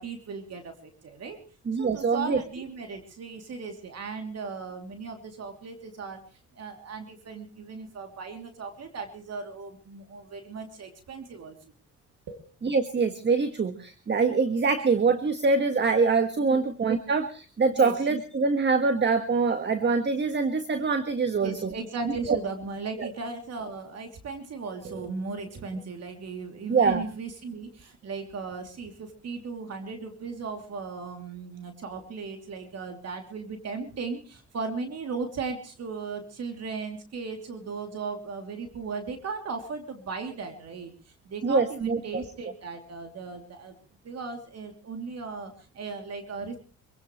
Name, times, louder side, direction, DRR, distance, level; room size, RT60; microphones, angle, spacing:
voice 1, 0.0-1.4 1.8-6.2 6.5-11.5 12.3-12.4 16.5-16.6 17.7-17.9 21.4-40.9 41.2-43.7 44.0-46.6, right 4 dB, 55° right, 5 dB, 3.1 m, -37 dB
voice 2, 1.7-2.4 12.6-21.7 22.3-22.4 23.0-23.1 26.7-27.0 41.4-42.2, right 4 dB, 35° right, 8 dB, 1.6 m, -24 dB
25.5 x 17.0 x 3.2 m, 0.37 s
cardioid pair, 90°, 30 cm